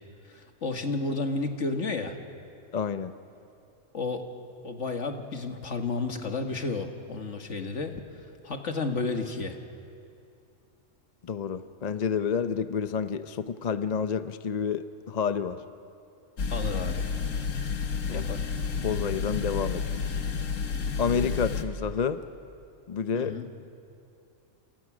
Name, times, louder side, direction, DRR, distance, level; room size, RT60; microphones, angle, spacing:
voice 1, 0.3-2.2 3.9-4.3 4.6-8.0 8.4-9.6 16.5-17.1 18.1-18.5 23.1-23.5, left 3 dB, 65° left, 5 dB, 2.0 m, -32 dB
voice 2, 2.7-3.1 11.2-15.6 18.1-18.2 18.8-19.8 20.1-20.2 21.0-22.2 22.9-23.4, left 6 dB, 40° left, 11 dB, 0.7 m, -29 dB
sound 1, 16.4-21.6, left 5 dB, 80° left, 1.7 m, -30 dB
29.0 x 28.0 x 6.2 m, 2.6 s
omnidirectional pair, 1.3 m